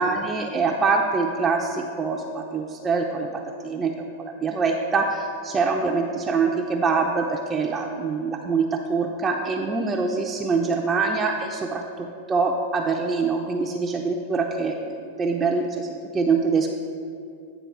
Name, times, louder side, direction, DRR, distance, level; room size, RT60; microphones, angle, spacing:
voice 1, 0.0-14.8 15.2-16.7, right 4 dB, 20° right, 0 dB, 0.5 m, -24 dB
9.2 x 3.9 x 5.9 m, 2.5 s
hypercardioid pair, 110°, 0 cm